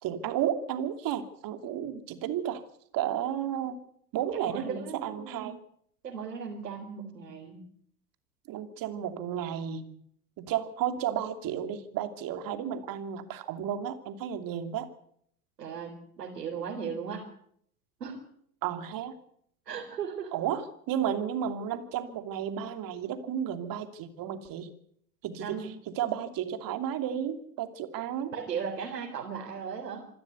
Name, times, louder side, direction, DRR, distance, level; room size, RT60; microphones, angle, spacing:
voice 1, 0.0-2.6 2.9-3.8 4.1-5.5 8.5-9.8 10.4-14.9 18.6-19.1 20.3-24.7 25.2-28.3, right 9 dB, 45° right, 8 dB, 2.8 m, -33 dB
voice 2, 4.5-5.6 6.0-7.6 15.6-17.3 18.0-18.2 19.7-20.3 25.4-25.7 28.3-30.1, right 6 dB, 85° right, -1 dB, 4.2 m, -37 dB
26.5 x 13.0 x 8.3 m, 0.69 s
hypercardioid pair, 85°, 48 cm